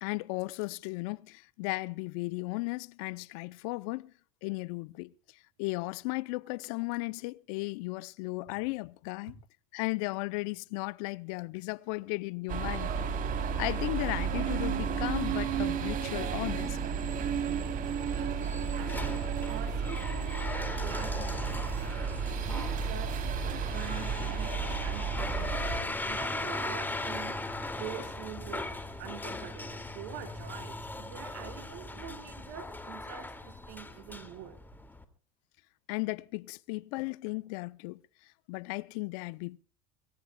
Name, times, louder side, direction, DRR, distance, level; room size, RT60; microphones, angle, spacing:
voice 1, 0.0-4.1 4.4-5.1 5.6-9.4 9.7-13.1 13.6-16.8 35.9-38.0 38.5-39.6, left 24 dB, 70° left, 0.7 m, -35 dB
sound 1, 12.5-25.8, right 6 dB, 45° right, 3.6 m, -32 dB
sound 2, 17.5-35.0, left 2 dB, 10° left, 2.5 m, -39 dB
voice 2, 18.1-19.2 19.5-21.9 22.5-27.5 27.8-28.7 29.0-34.6, right 10 dB, 65° right, 4.6 m, -45 dB
24.0 x 20.0 x 2.3 m
supercardioid pair, 100°, 19 cm